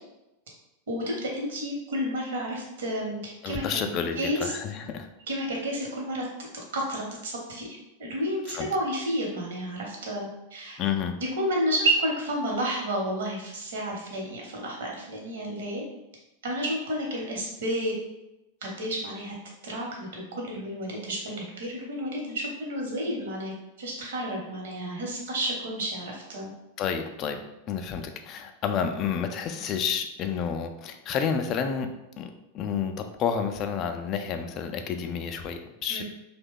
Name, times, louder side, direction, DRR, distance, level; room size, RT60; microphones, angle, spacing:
voice 1, 0.9-4.5 5.3-6.3 6.7-7.7 8.0-10.8 11.2-15.8 16.4-17.9 18.6-19.3 19.6-23.5 23.8-26.5 35.9-36.0, equal, 60° right, -1 dB, 0.9 m, -31 dB
voice 2, 3.4-5.1 8.5-8.7 10.8-11.1 26.8-27.4 27.7-31.9 32.2-36.0, left 7 dB, 35° left, 6 dB, 0.3 m, -30 dB
2.7 x 2.2 x 3.6 m, 0.92 s
figure-of-eight pair, 90°, 0 cm